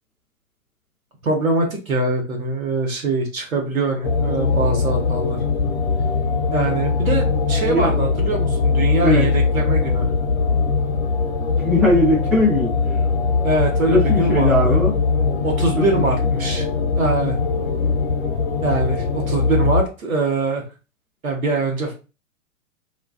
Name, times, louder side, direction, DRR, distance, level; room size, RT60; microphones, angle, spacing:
voice 1, 1.2-5.4 6.5-10.1 13.4-14.8 15.4-16.7 17.0-17.4 18.6-20.6 21.2-21.9, right 2 dB, 85° right, 1 dB, 1.0 m, -23 dB
sound 1, 4.0-19.8, left 4 dB, 55° left, 0.7 m, -21 dB
voice 2, 11.6-12.7 13.9-15.0, left 1 dB, ahead, -8 dB, 0.4 m, -18 dB
2.4 x 2.3 x 2.3 m, 0.32 s
figure-of-eight pair, 115°, 41 cm